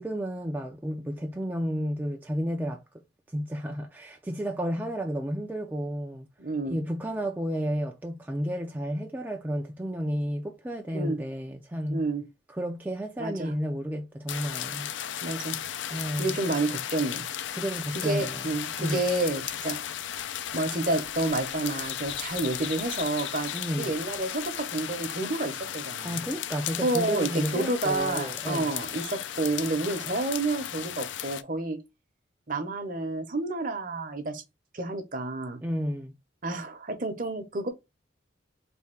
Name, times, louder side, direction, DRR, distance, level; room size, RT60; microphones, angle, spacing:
voice 1, 0.0-2.8 3.3-6.3 6.6-12.0 12.5-14.9 15.9-16.4 17.5-18.5 18.8-19.0 23.5-24.0 26.0-28.7 35.6-36.2, equal, 10° right, 0.4 m, -32 dB
voice 2, 6.4-6.8 10.9-11.2 11.9-12.2 13.2-13.5 15.2-15.6 16.2-17.2 18.0-19.8 20.5-23.5 23.8-26.2 26.8-31.8 32.5-34.4 34.7-35.6 36.4-37.7, right 2 dB, 45° right, 0.8 m, -29 dB
sound 1, 14.3-31.4, left 10 dB, 75° left, 0.4 m, -35 dB
3.5 x 2.7 x 4.3 m
head